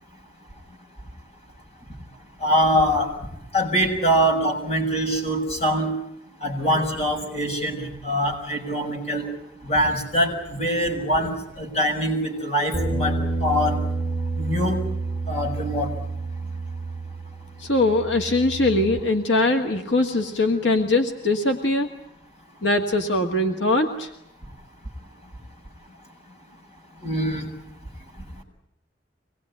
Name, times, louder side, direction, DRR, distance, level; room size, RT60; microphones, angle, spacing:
voice 1, 2.4-3.1 3.5-5.9 6.4-9.3 9.6-13.8 14.4-14.8 15.3-15.9 27.0-27.5, equal, 35° left, 2 dB, 6.8 m, -23 dB
sound 1, 12.7-19.0, right 3 dB, 5° left, 2.9 m, -29 dB
voice 2, 17.6-21.9 22.6-24.1, left 2 dB, 80° left, 4 dB, 2.0 m, -21 dB
25.0 x 20.5 x 9.9 m, 0.79 s
head